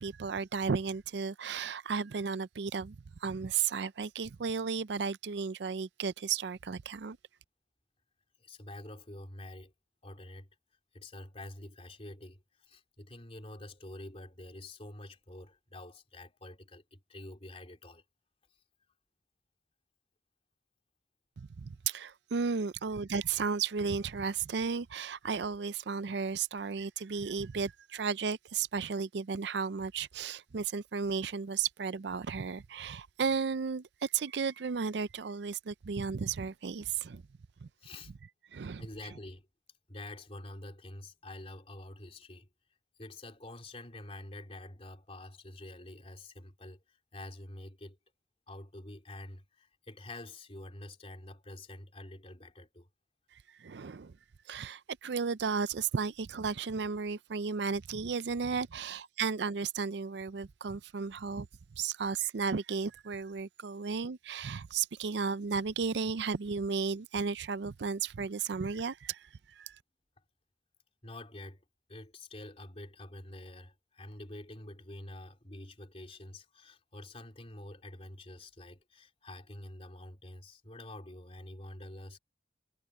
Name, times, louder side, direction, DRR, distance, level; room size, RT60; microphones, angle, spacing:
voice 1, 0.0-3.0 3.2-7.2 21.4-37.2 37.6-37.7 38.5-38.9 53.3-54.1 54.5-61.5 61.8-69.8, right 5 dB, 65° right, 0.5 m, -34 dB
voice 2, 8.4-9.7 10.0-10.5 10.9-18.0 37.8-38.1 38.8-39.5 39.9-42.5 43.0-48.0 48.5-52.9 71.0-82.2, left 1 dB, 35° left, 3.4 m, -47 dB
head